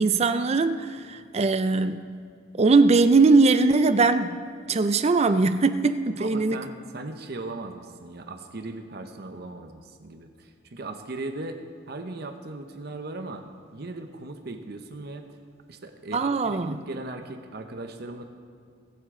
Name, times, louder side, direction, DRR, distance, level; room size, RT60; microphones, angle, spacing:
voice 1, 0.0-2.1 2.6-4.4 4.7-6.6 16.1-16.8, right 3 dB, 35° right, 11 dB, 0.4 m, -21 dB
voice 2, 6.2-11.6 11.9-13.4 13.7-15.3 15.7-18.2, right 2 dB, 55° right, 6 dB, 0.8 m, -38 dB
20.5 x 8.0 x 3.7 m, 2.3 s
head